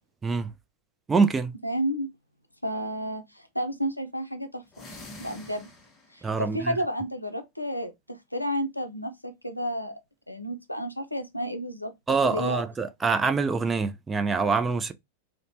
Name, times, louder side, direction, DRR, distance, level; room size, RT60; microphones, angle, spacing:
voice 1, 0.2-0.5 1.1-1.5 6.2-6.8 12.1-14.9, right 4 dB, 15° right, 0.3 m, -25 dB
voice 2, 1.6-2.1 2.6-4.9 5.2-5.7 6.1-9.1 9.4-9.9 10.3-11.9 12.2-12.6, equal, 90° left, 0.5 m, -31 dB
sound 1, 4.7-6.3, left 2 dB, 25° left, 0.9 m, -45 dB
3.0 x 2.1 x 2.6 m
figure-of-eight pair, 90°, 0 cm